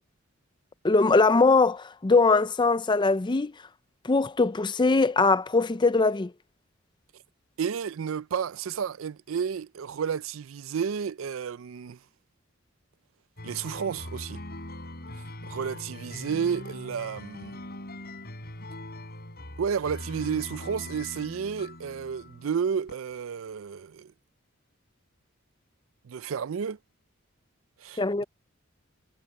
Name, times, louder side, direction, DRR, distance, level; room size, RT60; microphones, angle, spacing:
voice 1, 0.8-3.5 4.0-6.3 28.0-28.2, left 3 dB, 25° left, 0.5 m, -21 dB
voice 2, 7.6-12.0 13.4-14.4 15.5-17.6 19.6-24.1 26.0-26.8 27.8-28.2, right 7 dB, 75° right, 0.4 m, -31 dB
sound 1, 13.4-22.9, left 1 dB, 50° left, 6.8 m, -41 dB
head